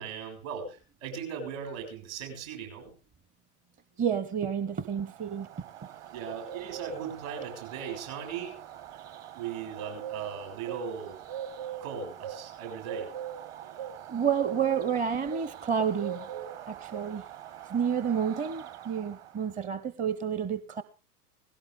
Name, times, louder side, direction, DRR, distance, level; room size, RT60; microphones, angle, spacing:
voice 1, 0.0-2.9 6.1-8.6 9.3-11.2 11.8-13.1 16.3-16.4, right 7 dB, 55° right, 6.9 m, -38 dB
voice 2, 4.0-5.5 14.1-16.3 16.7-17.2 17.7-20.8, right 7 dB, 15° right, 0.7 m, -30 dB
Bird, 4.8-19.5, right 10 dB, 30° right, 1.1 m, -42 dB
18.0 x 16.5 x 3.5 m
figure-of-eight pair, 90°, 47 cm